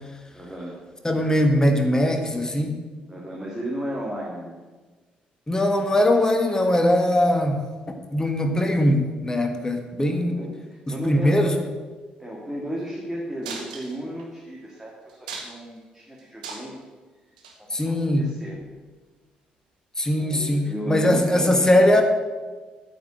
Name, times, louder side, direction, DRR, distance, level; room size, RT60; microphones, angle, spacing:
voice 1, 0.3-0.8 3.1-4.6 10.1-11.6 12.2-16.8 17.6-18.6 20.1-22.0, equal, 10° right, -4 dB, 2.1 m, -34 dB
voice 2, 1.0-2.8 5.5-7.6 8.1-10.4 10.9-11.5 17.7-18.2 20.0-22.0, left 1 dB, 15° left, 5 dB, 1.4 m, -21 dB
sound 1, 13.4-14.2 14.7-14.8 15.1-15.8 16.2-16.8 17.4-17.6 18.5-18.6, right 4 dB, 80° right, 0.9 m, -37 dB
9.0 x 5.2 x 7.8 m, 1.3 s
figure-of-eight pair, 45°, 4 cm